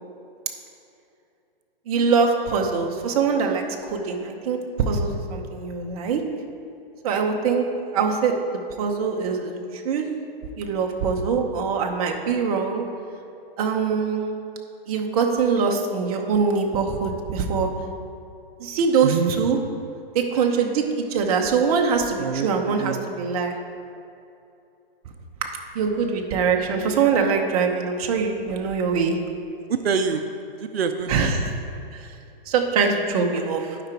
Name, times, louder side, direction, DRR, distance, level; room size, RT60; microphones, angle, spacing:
voice 1, 1.9-3.6 3.9-4.6 4.9-6.2 7.0-7.6 7.9-8.3 8.8-10.1 10.6-12.8 13.6-14.4 14.9-17.7 18.6-19.6 20.1-23.6 25.7-29.2 31.1-31.5 31.9-32.0 32.5-33.8, right 5 dB, 40° right, 2 dB, 0.9 m, -23 dB
voice 2, 19.0-19.3 22.2-23.0 29.7-30.2 30.6-31.3, right 6 dB, 85° right, 7 dB, 0.6 m, -26 dB
11.5 x 5.0 x 4.5 m, 2.6 s
hypercardioid pair, 145°, 30 cm